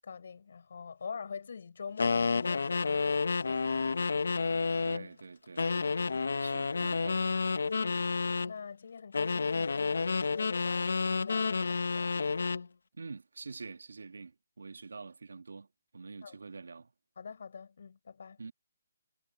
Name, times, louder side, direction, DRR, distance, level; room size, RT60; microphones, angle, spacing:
voice 1, 0.0-3.6 7.8-8.0 8.4-12.1 16.2-16.4 17.2-18.4, left 6 dB, 50° left, 7.5 m, -45 dB
sound 1, 2.0-5.1 5.6-8.5 9.1-12.7, left 4 dB, 75° left, 1.5 m, -30 dB
voice 2, 4.8-5.9 6.4-7.4 13.0-15.7 15.9-16.9 18.4-18.5, right 4 dB, 85° right, 1.9 m, -46 dB
hypercardioid pair, 175°, 0 cm